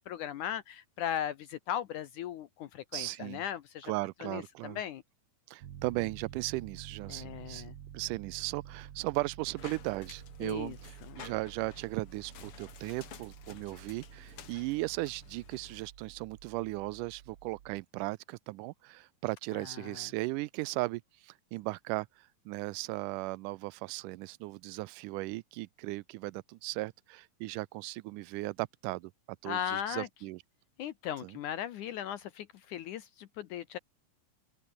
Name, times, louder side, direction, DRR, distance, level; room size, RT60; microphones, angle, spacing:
voice 1, 0.0-3.9 4.2-5.0 7.1-7.7 10.4-10.8 11.1-11.2 19.5-20.1 29.5-30.1 30.8-33.8, left 10 dB, 70° left, 2.2 m, -38 dB
voice 2, 2.9-3.4 3.8-4.8 5.5-7.6 7.9-29.1 29.4-30.4 31.2-31.4, right 21 dB, 80° right, 1.9 m, -37 dB
Piano, 5.6-17.8, right 10 dB, 55° right, 1.5 m, -50 dB
sound 1, 9.6-15.8, left 9 dB, 50° left, 1.9 m, -52 dB
open air
omnidirectional pair, 4.1 m